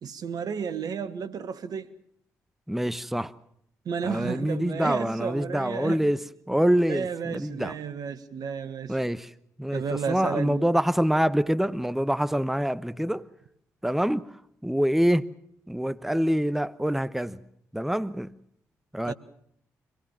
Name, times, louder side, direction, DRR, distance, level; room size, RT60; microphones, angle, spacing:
voice 1, 0.0-1.9 3.8-6.1 6.9-9.0 9.7-10.7 19.0-19.1, right 6 dB, 60° right, 1.6 m, -32 dB
voice 2, 2.7-3.3 4.0-7.8 8.9-9.3 9.6-13.3 13.8-15.3 15.7-17.4 17.7-18.3 18.9-19.1, equal, 5° right, 1.0 m, -26 dB
25.0 x 19.5 x 7.2 m
hypercardioid pair, 40°, 7 cm